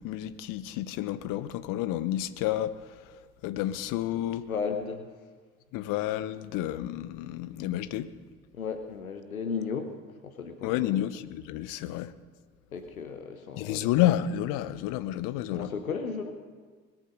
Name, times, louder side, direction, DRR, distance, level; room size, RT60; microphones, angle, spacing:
voice 1, 0.0-4.5 5.7-8.1 10.6-12.1 13.6-15.7, left 13 dB, 50° left, 14 dB, 1.0 m, -30 dB
voice 2, 4.5-5.1 8.5-9.9 10.2-11.0 12.7-13.9 15.5-16.3, left 5 dB, 80° left, 8 dB, 1.2 m, -34 dB
20.5 x 9.0 x 6.5 m, 1.5 s
figure-of-eight pair, 65°, 42 cm